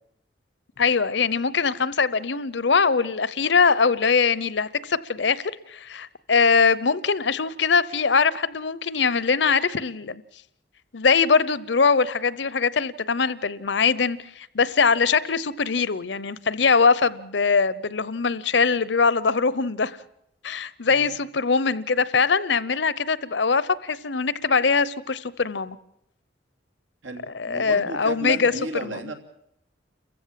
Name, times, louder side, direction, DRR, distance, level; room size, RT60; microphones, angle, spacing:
voice 1, 0.8-10.2 10.9-20.0 20.4-25.8 27.4-28.5, left 5 dB, 65° left, 17 dB, 0.8 m, -22 dB
voice 2, 20.9-21.2 27.0-29.1, right 2 dB, 90° right, 5 dB, 3.1 m, -33 dB
29.0 x 15.0 x 7.5 m, 0.77 s
head